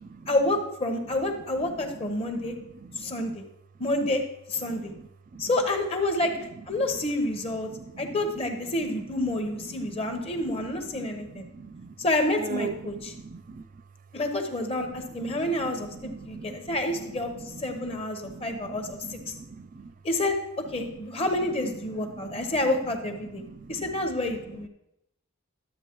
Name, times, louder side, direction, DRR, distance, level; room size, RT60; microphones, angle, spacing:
voice 1, 0.3-2.5 3.0-3.4 3.8-4.2 4.5-4.9 5.4-6.3 6.7-7.7 8.0-11.5 12.0-13.1 14.1-17.3 17.6-19.3 20.0-20.4 20.7-23.4 23.7-24.7, left 1 dB, 25° left, 5 dB, 0.9 m, -28 dB
voice 2, 2.3-3.4 4.7-5.0 5.3-5.4 7.7-8.2 8.8-8.9 9.6-10.4 10.9-11.9 12.4-13.6 15.0-15.5 15.9-17.1 17.4-18.0 18.2-19.9 20.9-21.0 21.8-22.6 23.2-23.9, right 5 dB, 35° right, 13 dB, 0.3 m, -42 dB
11.5 x 7.8 x 3.0 m, 0.84 s
head